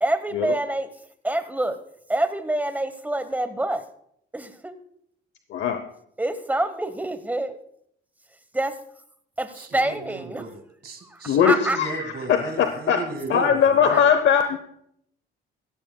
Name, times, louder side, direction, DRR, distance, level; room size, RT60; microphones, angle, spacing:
voice 1, 0.0-0.9 1.2-1.8 2.1-3.8 4.3-4.8 6.2-7.6 8.5-8.8 9.4-10.5 11.0-11.2 11.4-11.8 13.9-14.0, right 1 dB, 10° right, 11 dB, 1.1 m, -26 dB
voice 2, 5.5-5.9 11.3-14.6, left 8 dB, 65° left, 8 dB, 0.8 m, -21 dB
voice 3, 9.6-14.0, right 3 dB, 55° right, 5 dB, 1.9 m, -35 dB
15.5 x 15.0 x 2.3 m, 0.71 s
cardioid pair, 90°, 20 cm